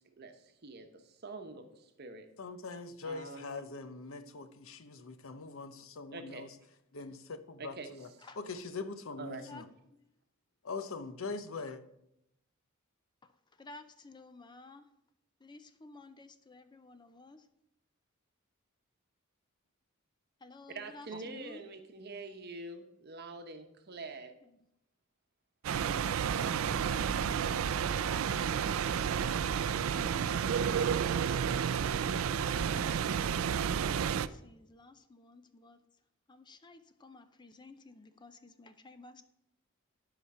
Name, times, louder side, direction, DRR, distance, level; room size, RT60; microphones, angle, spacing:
voice 1, 0.2-2.3 3.0-3.6 6.1-6.5 7.6-8.3 9.2-9.4 20.7-24.3, right 3 dB, 50° right, 1.0 m, -45 dB
voice 2, 2.4-6.5 6.9-8.1 8.4-9.6 10.6-11.8, left 4 dB, 70° left, 0.7 m, -42 dB
voice 3, 13.6-14.9 15.4-17.5 20.4-21.6 24.4-24.6 26.5-28.4 30.2-33.0 34.0-35.8 36.3-39.2, left 3 dB, 20° left, 0.5 m, -54 dB
sound 1, 25.6-34.3, right 7 dB, 75° right, 0.4 m, -31 dB
11.0 x 5.1 x 5.6 m
head